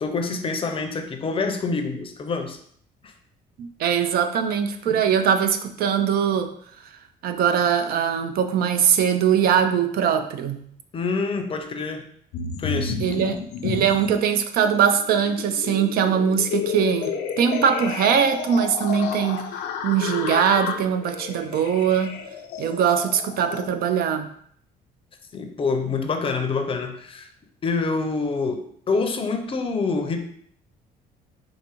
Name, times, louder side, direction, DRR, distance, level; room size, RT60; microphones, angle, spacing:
voice 1, 0.0-2.6 3.0-3.1 4.9-5.0 10.9-12.1 12.6-13.4 25.3-27.3 27.6-30.2, left 4 dB, 30° left, 6 dB, 0.5 m, -26 dB
voice 2, 3.6-6.5 7.2-10.6 13.0-13.4 13.6-19.4 19.8-22.2 22.6-24.3, right 8 dB, 65° right, 7 dB, 0.4 m, -21 dB
sound 1, 12.3-14.2 14.6-23.7, left 6 dB, 80° left, 0.5 m, -31 dB
4.7 x 2.6 x 2.9 m, 0.64 s
cardioid pair, 110°, 17 cm